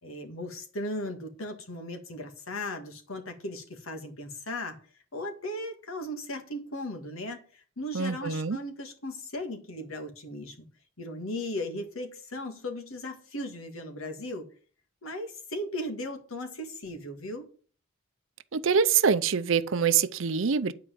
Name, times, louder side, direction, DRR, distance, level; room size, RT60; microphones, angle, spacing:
voice 1, 0.0-4.8 5.1-10.6 11.0-14.5 15.0-17.5, left 1 dB, 85° left, 1.8 m, -37 dB
voice 2, 7.9-8.6 18.5-20.7, right 6 dB, 70° right, 0.6 m, -25 dB
9.6 x 4.8 x 7.4 m
head